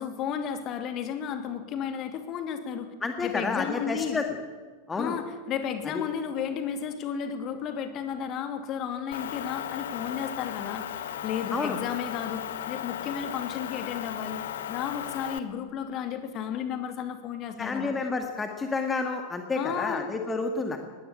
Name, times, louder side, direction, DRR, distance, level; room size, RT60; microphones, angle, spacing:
voice 1, 0.0-2.9 3.2-4.2 5.0-14.4 14.7-17.9 19.5-20.0, left 8 dB, 35° left, 7 dB, 2.6 m, -33 dB
voice 2, 3.0-4.3 4.9-5.2 5.9-6.0 11.5-11.8 17.6-20.8, left 4 dB, 15° left, 4 dB, 1.9 m, -30 dB
Motor vehicle (road) / Engine, 9.1-15.4, left 10 dB, 60° left, 1.3 m, -36 dB
20.5 x 17.0 x 8.6 m, 1.5 s
figure-of-eight pair, 90°, 0 cm